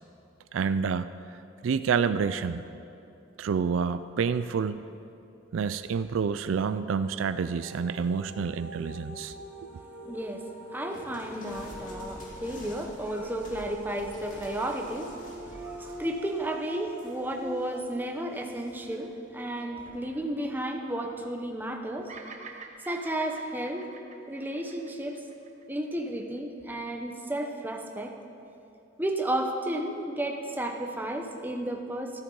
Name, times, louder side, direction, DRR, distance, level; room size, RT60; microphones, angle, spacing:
voice 1, 0.5-1.1 1.6-2.6 3.4-4.8 5.5-9.3, right 6 dB, 75° right, 12 dB, 0.4 m, -28 dB
sound 1, 6.9-19.8, equal, 10° left, 2.2 m, -44 dB
voice 2, 10.0-10.4 10.7-15.1 15.5-22.1 22.9-23.9 24.3-25.3 25.7-28.1 29.0-32.2, right 1 dB, 10° right, 2 dB, 0.8 m, -33 dB
sound 2, 10.9-17.9 18.3-19.0 19.8-20.2, left 1 dB, 40° left, 2.1 m, -48 dB
Bird vocalization bird call bird song, 22.1-26.4, right 4 dB, 35° right, 0.8 m, -48 dB
13.5 x 13.0 x 3.9 m, 2.7 s
head